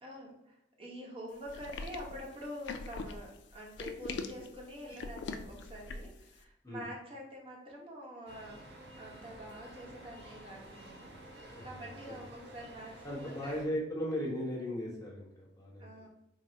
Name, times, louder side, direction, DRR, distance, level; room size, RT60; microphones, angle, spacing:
voice 1, 0.0-8.6 9.0-13.8 15.8-16.1, equal, 30° right, -2 dB, 0.8 m, -46 dB
sound 1, 1.5-6.2, left 3 dB, 75° left, 0.3 m, -42 dB
sound 2, 8.3-13.7, right 1 dB, 70° right, 0.8 m, -51 dB
voice 2, 13.0-16.0, equal, 20° left, -4 dB, 0.9 m, -37 dB
3.8 x 2.0 x 4.3 m, 0.82 s
head